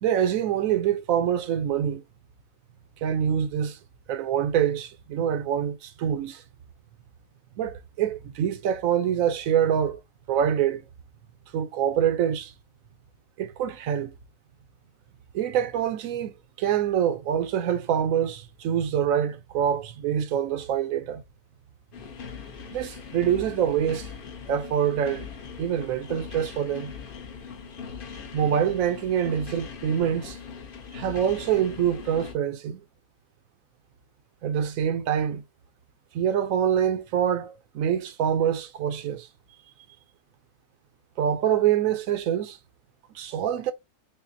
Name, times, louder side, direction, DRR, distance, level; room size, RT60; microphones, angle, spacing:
voice 1, 0.0-2.0 3.0-3.8 4.1-6.4 7.6-10.0 10.3-10.8 11.5-12.5 13.4-14.1 15.3-16.3 16.6-21.2 22.7-24.1 24.5-25.3 25.6-26.9 28.3-30.4 30.9-32.8 34.4-35.4 36.1-39.3 41.2-42.6 43.1-43.7, right 9 dB, 70° right, 0.8 m, -25 dB
sound 1, 21.9-32.3, left 6 dB, 50° left, 0.6 m, -40 dB
5.6 x 2.1 x 2.6 m
omnidirectional pair, 1.8 m